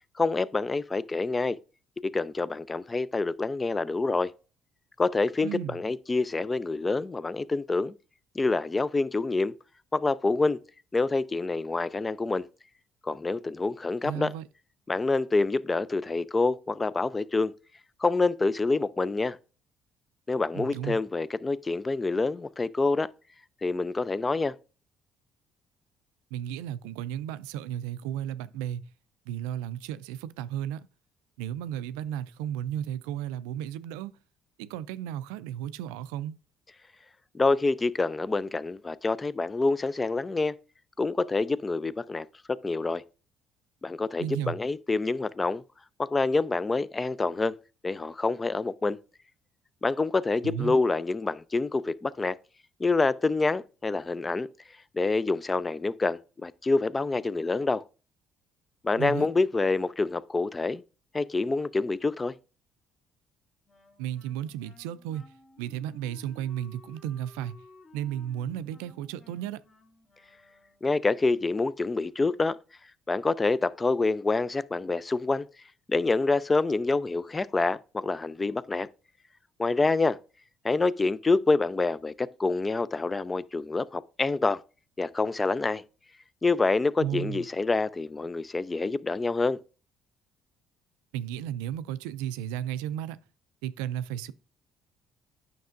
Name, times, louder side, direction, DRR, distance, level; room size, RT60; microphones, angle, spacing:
voice 1, 0.2-1.6 2.1-4.3 5.0-7.9 8.4-9.5 9.9-10.6 10.9-12.4 13.0-14.3 14.9-17.5 18.0-19.4 20.3-23.1 23.6-24.5 37.3-40.5 41.0-42.3 42.6-43.0 43.8-45.6 46.0-47.5 47.8-49.0 49.8-52.3 52.8-54.5 54.9-57.8 58.8-60.8 61.1-62.3 70.8-72.6 73.1-75.5 75.9-78.9 79.6-80.2 80.6-84.6 85.0-85.8 86.4-89.6, left 3 dB, 25° left, 0.4 m, -27 dB
voice 2, 5.4-5.8 14.0-14.4 20.5-21.0 26.3-28.8 29.3-30.9 31.4-34.1 34.6-36.4 44.2-44.6 50.4-50.8 59.0-59.3 64.0-65.3 65.6-67.6 67.9-69.6 87.0-87.4 91.1-93.2 93.6-94.3, right 11 dB, 90° right, 0.3 m, -34 dB
Wind instrument woodwind instrument, 63.7-71.0, left 2 dB, 40° left, 2.1 m, -56 dB
9.2 x 5.9 x 2.5 m
supercardioid pair, 70°, 0 cm